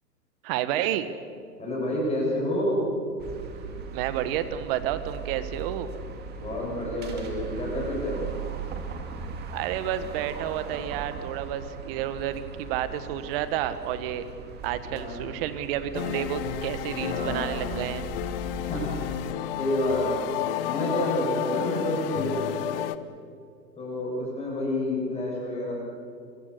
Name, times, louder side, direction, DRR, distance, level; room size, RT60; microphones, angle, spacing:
voice 1, 0.4-1.1 3.9-5.9 9.5-14.2 14.6-18.0, right 11 dB, 35° right, 12 dB, 1.5 m, -30 dB
voice 2, 1.6-2.8 6.4-8.2 14.8-15.3 17.0-17.8 18.6-19.0 19.6-20.2 20.6-22.6 23.8-25.7, left 1 dB, 15° left, -3 dB, 7.2 m, -29 dB
sound 1, 3.2-19.3, right 5 dB, 20° right, 2.1 m, -38 dB
sound 2, 15.9-23.0, left 12 dB, 35° left, 0.9 m, -32 dB
24.5 x 23.0 x 6.8 m, 2.3 s
hypercardioid pair, 125°, 50 cm